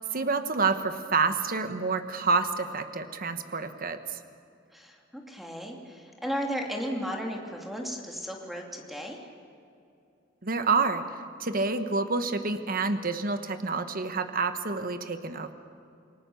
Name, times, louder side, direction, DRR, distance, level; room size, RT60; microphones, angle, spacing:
voice 1, 0.1-4.2 10.4-11.1 11.4-15.5, right 4 dB, 45° right, 9 dB, 1.2 m, -28 dB
voice 2, 4.7-9.2, equal, ahead, 1 dB, 2.7 m, -35 dB
29.0 x 20.0 x 7.1 m, 2.6 s
head